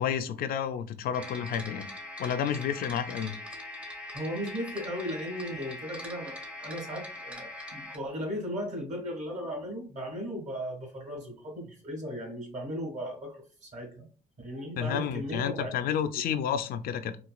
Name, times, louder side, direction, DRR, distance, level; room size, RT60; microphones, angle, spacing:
voice 1, 0.0-1.9 2.2-3.3 14.8-17.2, left 8 dB, 60° left, 9 dB, 0.4 m, -30 dB
sound 1, 1.1-8.0, left 1 dB, 5° right, 0.7 m, -42 dB
voice 2, 4.1-14.0 14.4-15.7, equal, 45° right, 1 dB, 1.5 m, -36 dB
4.0 x 2.3 x 2.2 m, 0.37 s
cardioid pair, 110°, 17 cm